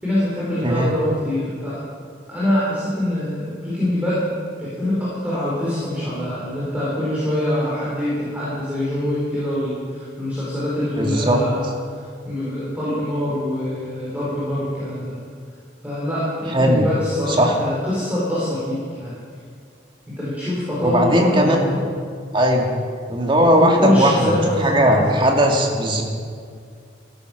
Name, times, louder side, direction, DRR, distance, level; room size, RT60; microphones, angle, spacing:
voice 1, 0.0-1.8 2.3-4.2 4.6-11.7 12.2-15.2 15.8-19.2 20.2-21.8 23.5-25.2, left 1 dB, 10° right, -10 dB, 4.5 m, -24 dB
voice 2, 0.6-0.9 11.0-11.4 16.5-16.9 17.4-17.6 20.8-21.6 22.3-22.7 23.1-24.4 24.6-26.0, equal, 25° right, 1 dB, 2.2 m, -17 dB
16.0 x 12.5 x 6.3 m, 2.2 s
head